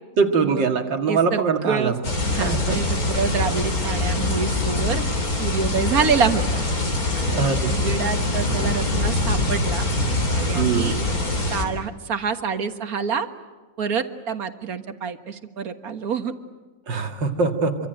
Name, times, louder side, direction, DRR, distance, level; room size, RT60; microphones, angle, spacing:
voice 1, 0.2-1.9 2.4-2.8 7.3-7.7 10.5-11.0 16.9-17.8, right 5 dB, 80° right, 5 dB, 2.7 m, -22 dB
voice 2, 1.1-1.9 2.3-5.0 5.4-6.6 7.2-9.9 10.3-11.1 11.5-13.3 13.8-16.3, right 6 dB, 55° right, 8 dB, 1.9 m, -26 dB
sound 1, 2.0-11.6, left 2 dB, 50° left, 4.1 m, -24 dB
26.5 x 25.0 x 9.1 m, 1.2 s
omnidirectional pair, 1.9 m